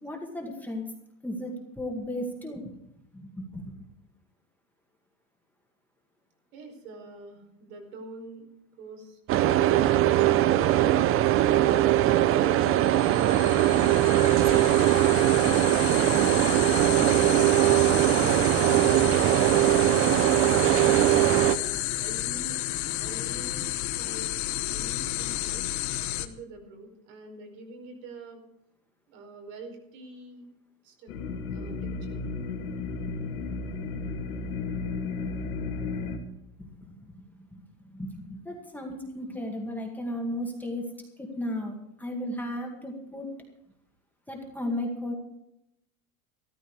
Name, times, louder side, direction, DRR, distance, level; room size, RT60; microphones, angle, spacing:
voice 1, 0.0-0.9 1.2-2.7 3.1-3.7 36.6-37.2 37.5-40.8 41.2-43.3 44.3-45.1, left 1 dB, 5° left, 0 dB, 2.0 m, -35 dB
voice 2, 6.5-8.4 8.8-9.7 10.2-11.1 11.4-12.8 13.3-14.0 14.6-17.7 21.2-22.6 23.0-24.3 24.7-25.6 26.1-28.4 29.1-30.4 30.8-31.1 31.5-31.7 32.0-32.2, right 3 dB, 65° right, 3 dB, 5.1 m, -44 dB
sound 1, 9.3-21.6, right 14 dB, 35° right, 0.6 m, -21 dB
sound 2, 12.6-26.3, left 14 dB, 45° left, 1.1 m, -32 dB
sound 3, 31.1-36.2, left 4 dB, 90° left, 2.5 m, -33 dB
14.0 x 13.5 x 4.8 m, 0.80 s
supercardioid pair, 130°, 41 cm